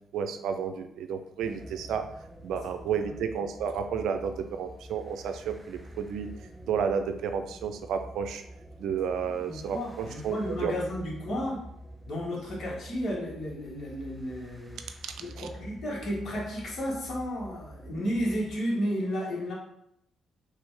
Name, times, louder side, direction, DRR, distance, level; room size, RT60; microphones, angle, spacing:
voice 1, 0.1-2.0 2.4-6.3 6.6-8.4 8.8-10.7 15.4-15.5, right 7 dB, 80° right, 7 dB, 0.4 m, -31 dB
sound 1, 1.4-18.6, equal, 10° right, 0.4 m, -47 dB
voice 2, 9.5-11.6 12.0-14.8 15.2-19.5, equal, 55° left, -4 dB, 1.8 m, -32 dB
3.3 x 3.3 x 4.7 m, 0.76 s
cardioid pair, 90°, 0 cm